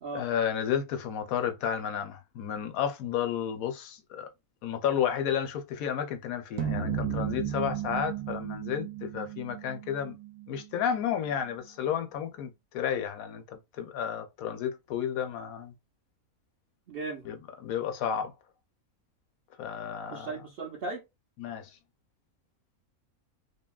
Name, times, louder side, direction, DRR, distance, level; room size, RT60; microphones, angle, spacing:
voice 1, 0.1-4.3 4.6-10.2 10.5-15.7 17.3-18.3 19.6-20.3 21.4-21.7, left 8 dB, 75° left, 1.0 m, -32 dB
sound 1, 6.6-11.0, right 8 dB, 90° right, 1.1 m, -34 dB
voice 2, 16.9-17.3 20.1-21.0, right 3 dB, 60° right, 0.6 m, -37 dB
2.7 x 2.6 x 2.2 m
omnidirectional pair, 1.5 m